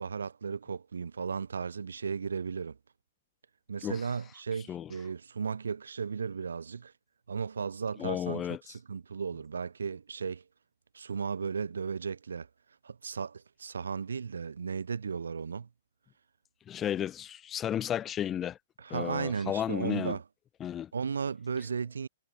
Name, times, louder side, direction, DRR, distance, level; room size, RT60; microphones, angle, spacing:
voice 1, 0.0-2.8 3.7-6.9 7.3-10.4 10.9-12.5 12.8-15.7 18.8-20.2 20.9-22.1, right 6 dB, 90° right, 2.2 m, -35 dB
voice 2, 8.0-8.6 16.7-18.6 18.9-20.2 20.6-20.9, left 10 dB, 20° left, 0.5 m, -33 dB
hypercardioid pair, 145°, 0 cm